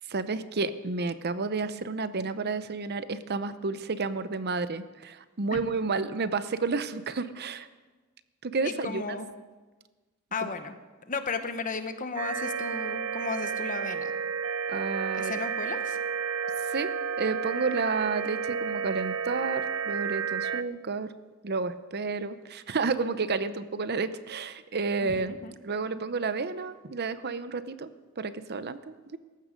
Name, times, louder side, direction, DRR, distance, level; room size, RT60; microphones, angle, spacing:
voice 1, 0.1-7.7 8.4-9.0 10.4-10.5 14.7-15.3 16.7-16.9 17.2-21.1 21.4-25.4 25.6-27.9 28.2-29.2, right 4 dB, 50° right, 13 dB, 0.7 m, -31 dB
voice 2, 8.6-9.3 10.3-10.7 11.1-14.1 15.1-16.0 25.0-25.5, left 4 dB, 40° left, 9 dB, 1.2 m, -34 dB
sound 1, 12.2-20.6, right 6 dB, 90° right, 0.6 m, -31 dB
18.5 x 15.0 x 5.2 m, 1.3 s
head